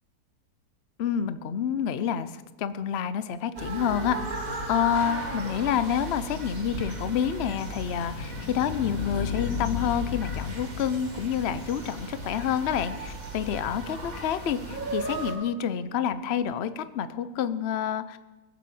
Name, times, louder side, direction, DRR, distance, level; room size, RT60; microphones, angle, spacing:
voice 1, 1.0-4.4 4.7-18.2, left 8 dB, 55° left, 13 dB, 0.7 m, -28 dB
sound 1, 3.6-15.3, right 2 dB, 50° right, 2.9 m, -36 dB
sound 2, 6.8-13.4, left 9 dB, 90° left, 1.7 m, -37 dB
21.0 x 7.3 x 7.7 m, 1.2 s
omnidirectional pair, 1.9 m